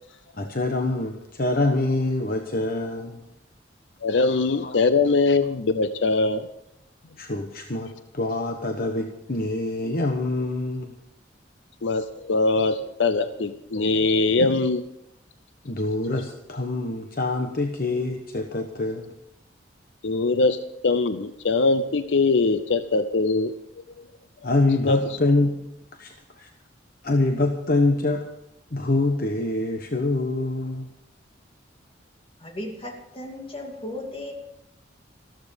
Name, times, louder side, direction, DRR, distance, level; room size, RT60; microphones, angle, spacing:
voice 1, 0.4-3.2 4.6-4.8 7.2-11.0 15.6-19.1 24.4-25.6 26.0-26.5 27.0-28.2 28.7-30.9, left 2 dB, 50° left, 5 dB, 1.1 m, -25 dB
voice 2, 4.0-6.5 11.8-14.8 20.0-23.5 24.8-25.2, left 3 dB, 75° left, 11 dB, 0.6 m, -22 dB
voice 3, 32.4-34.3, left 1 dB, 30° left, 2 dB, 2.6 m, -35 dB
14.5 x 13.5 x 5.2 m, 0.82 s
head